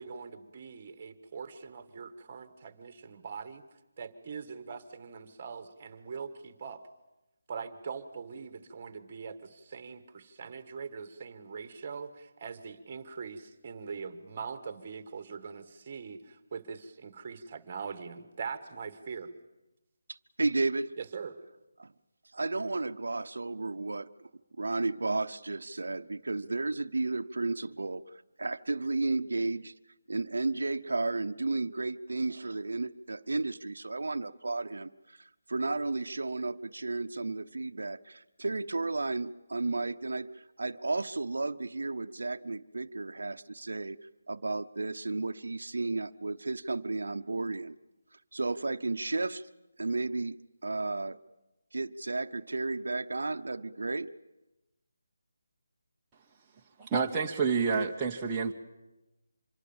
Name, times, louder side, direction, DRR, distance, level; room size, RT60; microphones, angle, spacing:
voice 1, 0.0-3.7 4.0-6.8 7.5-19.3 21.0-21.4, right 5 dB, 25° right, 10 dB, 1.5 m, -42 dB
voice 2, 20.1-21.0 21.8-21.9 22.3-24.3 24.6-28.0 28.4-29.7 30.1-44.0 44.3-47.7 48.3-49.5 49.8-50.4 50.6-51.2 51.7-54.1, right 3 dB, 85° right, 10 dB, 0.7 m, -33 dB
voice 3, 56.8-58.5, right 5 dB, 10° right, -3 dB, 0.9 m, -28 dB
26.0 x 22.5 x 7.2 m, 1.0 s
hypercardioid pair, 175°, 0 cm